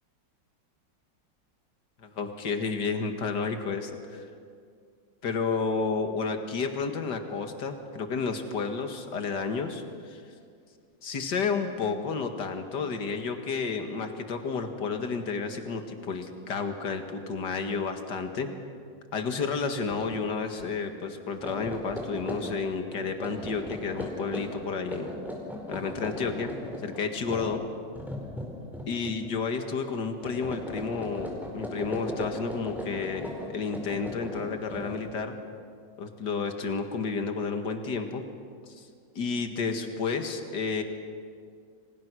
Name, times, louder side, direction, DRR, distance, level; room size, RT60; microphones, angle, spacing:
voice 1, 2.0-4.3 5.2-10.2 11.0-18.5 19.1-25.1 25.7-26.5 26.8-27.6 28.9-35.4 36.0-38.2 38.8-38.9 39.2-40.8, left 5 dB, 65° left, 6 dB, 2.4 m, -31 dB
sound 1, 19.8-20.2 20.5-20.7 21.2-29.3 29.6-29.9 30.2-35.3, left 1 dB, ahead, 4.8 m, -38 dB
30.0 x 25.0 x 6.3 m, 2.2 s
omnidirectional pair, 2.0 m